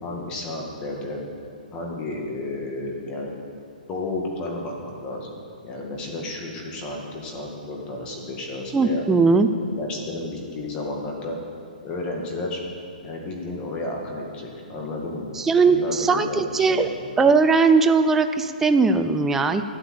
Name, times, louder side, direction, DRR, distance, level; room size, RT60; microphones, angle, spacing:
voice 1, 0.0-1.2 1.7-3.3 3.9-5.4 5.6-9.0 9.6-11.4 11.8-12.6 13.0-15.3 15.7-16.9 17.2-17.3, left 2 dB, 20° left, 0 dB, 2.0 m, -32 dB
voice 2, 8.7-9.5 15.4-16.9 17.2-19.6, right 4 dB, 5° right, 8 dB, 0.4 m, -19 dB
12.5 x 8.9 x 7.8 m, 2.3 s
hypercardioid pair, 160°, 5 cm